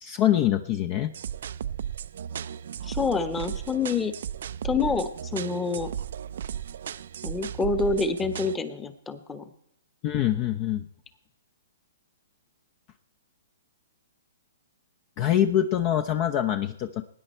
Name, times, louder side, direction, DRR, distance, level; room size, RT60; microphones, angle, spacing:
voice 1, 0.0-1.1 10.0-10.8 15.2-17.0, left 11 dB, 35° left, 10 dB, 0.7 m, -24 dB
sound 1, 1.1-8.6, right 9 dB, 60° right, 0.4 m, -35 dB
voice 2, 2.8-4.1 4.6-5.9 7.2-9.4, left 4 dB, 15° left, 11 dB, 1.2 m, -27 dB
19.0 x 9.9 x 4.4 m, 0.75 s
hypercardioid pair, 125°, 0 cm